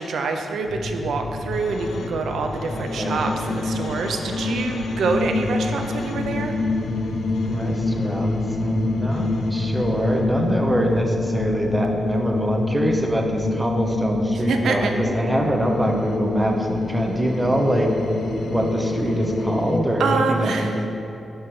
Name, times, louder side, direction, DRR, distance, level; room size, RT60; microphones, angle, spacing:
voice 1, 0.0-6.6 14.5-15.0 20.0-20.8, right 4 dB, 80° right, 4 dB, 0.5 m, -26 dB
sound 1, 0.7-19.8, left 2 dB, 80° left, 0.6 m, -26 dB
voice 2, 2.7-3.2 7.5-17.9 18.5-20.9, right 1 dB, 10° right, 2 dB, 0.6 m, -24 dB
12.0 x 4.7 x 3.1 m, 2.7 s
wide cardioid pair, 165°, 0 cm